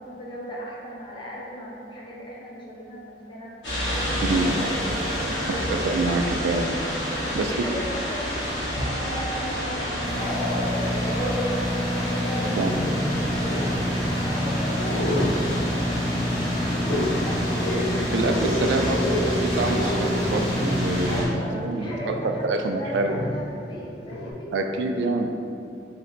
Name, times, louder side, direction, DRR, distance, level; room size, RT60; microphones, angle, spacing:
voice 1, 0.0-3.5 3.8-6.2 7.1-12.5 13.1-17.4 21.1-24.8, equal, 30° left, -4 dB, 0.6 m, -37 dB
sound 1, 3.6-21.3, equal, 90° left, 1.4 m, -29 dB
voice 2, 4.3-4.6 5.7-6.8 7.3-7.7 12.6-12.7 18.1-22.2 22.4-23.2 24.5-25.3, right 3 dB, 75° right, 4 dB, 0.3 m, -26 dB
Growling, 7.1-8.2 8.6-9.3 9.7-24.3, left 1 dB, 65° left, 0.5 m, -31 dB
sound 2, 10.0-21.2, equal, 30° right, 0.6 m, -29 dB
4.1 x 2.1 x 3.9 m, 2.5 s
head